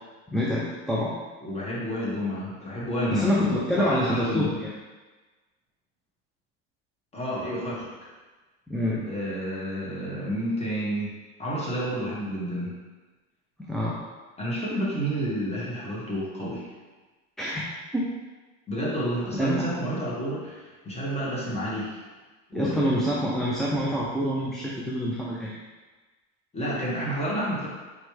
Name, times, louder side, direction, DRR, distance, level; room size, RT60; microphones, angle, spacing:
voice 1, 0.3-1.1 3.1-4.7 8.7-9.1 13.6-14.0 17.4-17.7 17.9-18.1 19.3-19.7 22.5-25.6, equal, ahead, -6 dB, 0.3 m, -26 dB
voice 2, 1.4-4.5 7.1-7.9 9.1-12.7 14.4-16.7 18.7-22.0 22.5-22.9 26.5-27.7, equal, 15° left, -6 dB, 1.5 m, -30 dB
4.4 x 3.1 x 3.1 m, 1.3 s
supercardioid pair, 115°, 36 cm